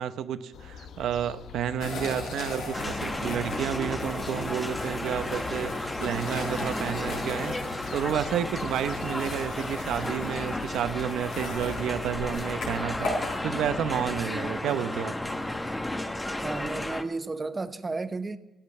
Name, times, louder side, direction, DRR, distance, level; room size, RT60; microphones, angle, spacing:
voice 1, 0.0-15.1, right 9 dB, 75° right, 0.8 m, -31 dB
sound 1, 0.5-14.2, left 7 dB, 70° left, 1.0 m, -44 dB
sound 2, 1.8-13.4, left 2 dB, 90° left, 4.6 m, -38 dB
sound 3, 2.7-17.0, left 1 dB, 15° left, 1.0 m, -33 dB
voice 2, 16.4-18.4, right 3 dB, 25° right, 0.9 m, -33 dB
13.5 x 8.6 x 9.9 m
cardioid pair, 90°, 0 cm